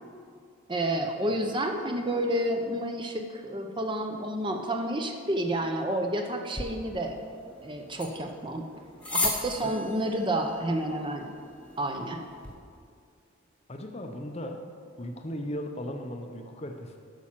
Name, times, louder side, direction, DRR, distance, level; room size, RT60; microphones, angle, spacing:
voice 1, 0.7-7.2 7.6-8.6 9.1-11.3 11.8-12.2, right 1 dB, 20° right, 4 dB, 0.6 m, -30 dB
sound 1, 6.5-12.5, left 3 dB, 5° left, 1.0 m, -37 dB
voice 2, 13.7-14.7 15.0-17.0, equal, 30° left, 4 dB, 0.6 m, -37 dB
8.6 x 6.1 x 7.3 m, 2.2 s
head